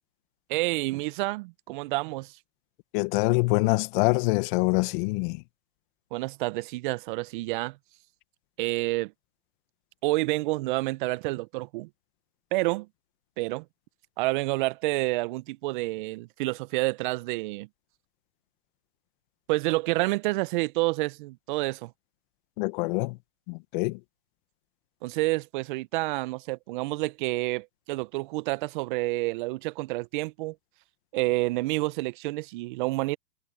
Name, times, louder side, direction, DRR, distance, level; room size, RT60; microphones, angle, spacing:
voice 1, 0.5-2.4 6.1-7.8 8.6-9.1 10.0-11.9 12.5-12.9 13.4-13.6 14.2-17.7 19.5-21.9 25.0-30.5 31.1-33.2, right 21 dB, 30° right, 1.2 m, -29 dB
voice 2, 2.9-5.4 22.6-23.2 23.5-24.0, left 26 dB, 30° left, 1.7 m, -25 dB
hypercardioid pair, 135°, 47 cm